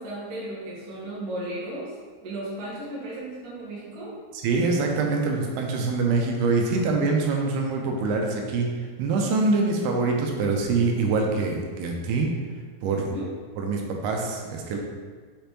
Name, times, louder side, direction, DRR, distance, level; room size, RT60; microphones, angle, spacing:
voice 1, 0.0-4.1 13.0-13.3, right 1 dB, 65° right, -8 dB, 0.9 m, -35 dB
voice 2, 4.3-8.7 9.0-12.3 12.8-13.1 13.6-14.8, right 3 dB, 85° right, 1 dB, 2.6 m, -24 dB
6.6 x 5.2 x 3.0 m, 1.5 s
omnidirectional pair, 4.7 m